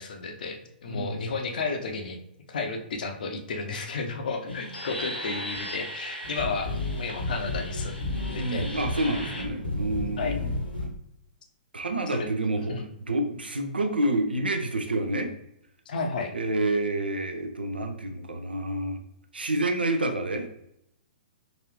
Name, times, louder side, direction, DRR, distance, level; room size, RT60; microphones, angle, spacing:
voice 1, 0.0-2.2 2.5-8.7 10.2-10.4 12.1-12.3 12.7-12.8 15.9-16.3, left 4 dB, 60° left, 4 dB, 0.6 m, -33 dB
voice 2, 0.9-1.3 8.4-10.5 11.7-15.3 16.3-19.0 19.3-20.5, right 1 dB, 80° right, 6 dB, 0.6 m, -28 dB
sound 1, 4.5-10.9, left 2 dB, 90° left, 1.1 m, -33 dB
4.1 x 2.6 x 3.0 m, 0.76 s
figure-of-eight pair, 115°, 5 cm